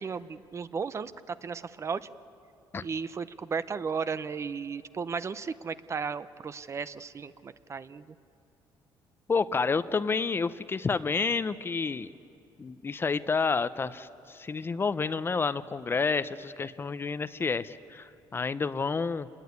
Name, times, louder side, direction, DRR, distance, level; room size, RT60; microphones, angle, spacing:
voice 1, 0.0-2.1 2.8-8.1, right 5 dB, 30° right, 14 dB, 0.7 m, -35 dB
voice 2, 9.3-12.1 12.6-19.3, left 4 dB, 25° left, 14 dB, 0.6 m, -29 dB
27.5 x 21.0 x 9.6 m, 2.6 s
cardioid pair, 130°, 9 cm